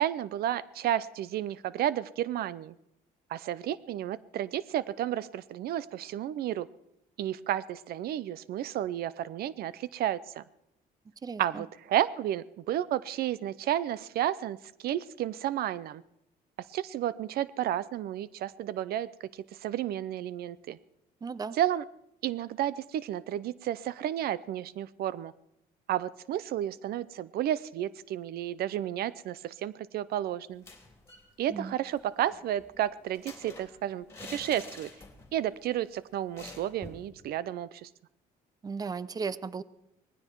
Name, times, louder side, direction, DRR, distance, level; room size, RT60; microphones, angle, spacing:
voice 1, 0.0-2.7 3.3-6.7 7.2-10.4 11.4-16.0 16.7-19.1 19.6-20.8 21.5-21.8 22.2-25.3 25.9-30.6 31.4-34.9 35.3-37.9, right 12 dB, 65° right, 19 dB, 0.6 m, -32 dB
voice 2, 11.2-11.6 21.2-21.6 31.5-31.7 38.6-39.6, right 5 dB, 20° right, 18 dB, 0.6 m, -35 dB
sound 1, 30.5-31.3 31.6-31.7 32.0-35.4 35.7-35.9 36.4-37.1, left 3 dB, 15° left, 3.3 m, -48 dB
19.0 x 15.5 x 4.6 m, 0.83 s
cardioid pair, 110°, 17 cm